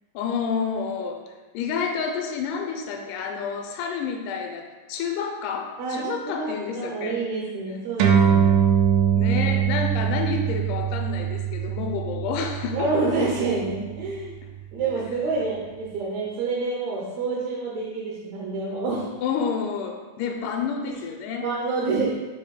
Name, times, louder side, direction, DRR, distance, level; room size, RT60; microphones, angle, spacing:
voice 1, 0.1-1.2 1.5-7.2 8.2-8.3 9.2-12.9 14.8-14.9 19.2-21.5, left 6 dB, 85° left, 3 dB, 2.2 m, -29 dB
voice 2, 6.3-8.7 12.7-14.4 14.7-19.1 21.4-22.1, right 3 dB, 70° right, -5 dB, 2.0 m, -27 dB
sound 1, 8.0-14.8, right 8 dB, 90° right, 2.1 m, -23 dB
6.9 x 2.8 x 4.8 m, 1.2 s
omnidirectional pair, 3.6 m